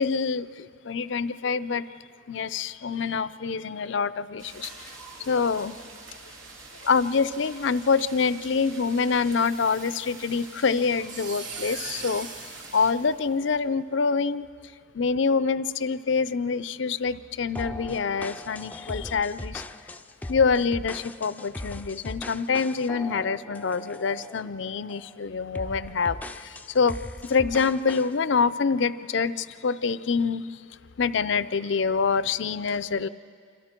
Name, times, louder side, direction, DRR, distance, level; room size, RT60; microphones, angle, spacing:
voice 1, 0.0-1.8 2.3-4.7 5.2-5.8 6.8-14.5 14.9-19.6 20.3-27.0 27.2-30.4 31.0-33.1, left 5 dB, 70° left, 15 dB, 0.5 m, -26 dB
sound 1, 4.4-12.9, right 3 dB, 85° right, 3.1 m, -46 dB
sound 2, 9.4-13.7, right 5 dB, 65° right, 3.2 m, -41 dB
sound 3, 17.5-24.5 24.9-25.1 25.5-28.1, left 1 dB, 10° left, 0.5 m, -39 dB
27.0 x 27.0 x 4.5 m, 2.1 s
head